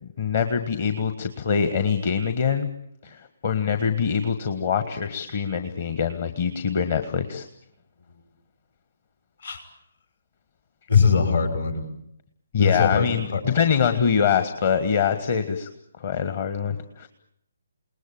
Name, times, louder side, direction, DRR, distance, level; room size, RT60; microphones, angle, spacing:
voice 1, 0.0-2.7 3.0-7.4 12.5-15.7 16.0-17.1, left 7 dB, 40° left, 9 dB, 1.6 m, -24 dB
voice 2, 10.9-11.9 12.6-13.1 13.3-13.4, left 6 dB, 60° left, 7 dB, 6.4 m, -21 dB
29.0 x 20.0 x 8.8 m, 0.78 s
figure-of-eight pair, 140°, 0 cm